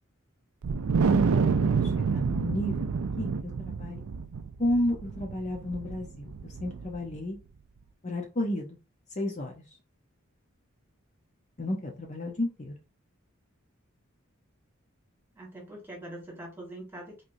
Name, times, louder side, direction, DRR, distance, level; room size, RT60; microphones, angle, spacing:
Wind, 0.6-7.2, right 5 dB, 85° right, 0.4 m, -28 dB
voice 1, 1.1-4.0 4.6-7.4 8.0-8.8 9.2-9.5 11.6-12.7, left 1 dB, 35° left, 2 dB, 0.7 m, -32 dB
voice 2, 15.3-17.2, right 1 dB, 10° right, -2 dB, 1.5 m, -43 dB
3.8 x 3.3 x 2.6 m, 0.29 s
head